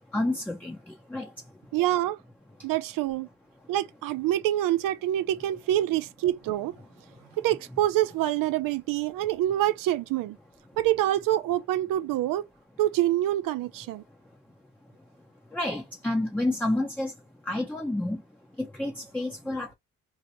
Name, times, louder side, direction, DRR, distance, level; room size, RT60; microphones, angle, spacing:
voice 1, 0.1-1.3 15.5-17.1 17.5-18.2 18.6-19.7, left 1 dB, 5° left, 0.7 m, -29 dB
voice 2, 1.7-2.2 2.6-3.3 3.7-6.7 7.4-10.4 10.8-12.5 12.8-14.0, right 13 dB, 75° right, 0.5 m, -26 dB
2.8 x 2.1 x 2.8 m
cardioid pair, 85°, 34 cm